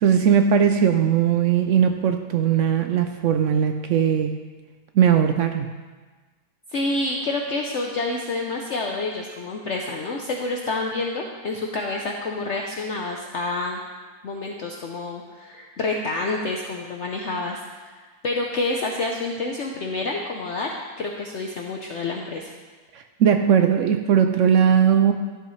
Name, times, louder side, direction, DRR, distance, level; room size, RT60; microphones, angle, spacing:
voice 1, 0.0-4.4 4.9-5.7 22.9-25.1, right 8 dB, 70° right, 6 dB, 0.7 m, -19 dB
voice 2, 6.7-13.8 14.2-17.9 18.2-20.7 21.0-22.5, left 2 dB, 55° left, 1 dB, 0.9 m, -28 dB
12.5 x 7.7 x 3.2 m, 1.4 s
omnidirectional pair, 1.7 m